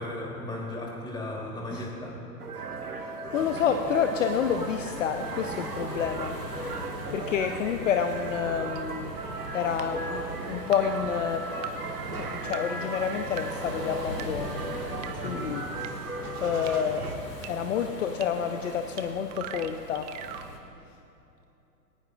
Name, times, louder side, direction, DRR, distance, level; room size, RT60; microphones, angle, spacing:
voice 1, 0.0-2.2 15.1-15.4, left 1 dB, 10° left, -2 dB, 3.1 m, -36 dB
sound 1, 2.4-17.2, right 3 dB, 65° right, 1.8 m, -36 dB
voice 2, 2.9-6.4 7.1-9.2 9.5-11.4 12.2-14.6 15.2-15.6 16.4-17.1 17.5-20.1, left 7 dB, 50° left, 6 dB, 0.9 m, -29 dB
sound 2, 3.3-20.6, left 1 dB, 85° left, 2.6 m, -41 dB
sound 3, 8.8-8.9 9.8-9.9 10.7-10.8 11.6-11.7 12.5-12.6 13.4-13.5 14.2-14.3 15.0-15.1 15.8-15.9 16.7-16.8 17.4-17.5 18.2-18.3 19.0-19.1 19.3-20.5, right 12 dB, 25° right, 0.6 m, -38 dB
20.5 x 18.0 x 2.5 m, 2.8 s
figure-of-eight pair, 110°, 48 cm